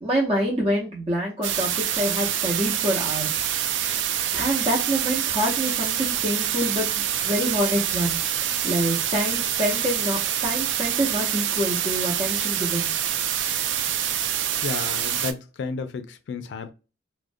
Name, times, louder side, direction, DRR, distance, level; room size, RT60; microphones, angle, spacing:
voice 1, 0.0-3.3 4.3-6.9 7.2-8.2 8.6-12.9, equal, 30° right, 0.6 m, -26 dB
sound 1, 1.4-15.3, right 10 dB, 85° right, 0.3 m, -26 dB
voice 2, 14.6-16.7, left 5 dB, 75° left, 0.3 m, -32 dB
2.4 x 2.1 x 2.5 m
head